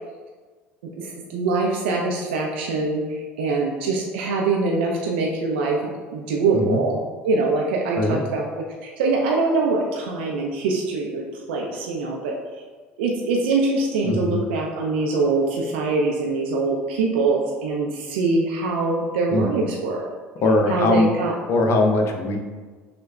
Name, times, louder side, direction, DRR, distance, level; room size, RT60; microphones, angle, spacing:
voice 1, 0.8-7.0 7.2-12.4 13.0-20.1 20.7-21.3, right 3 dB, 75° right, 0 dB, 0.4 m, -23 dB
voice 2, 14.0-14.4 19.3-19.5 20.4-21.1 21.5-22.4, left 2 dB, 50° left, 3 dB, 0.6 m, -20 dB
6.1 x 2.1 x 2.2 m, 1.4 s
hypercardioid pair, 65°, 6 cm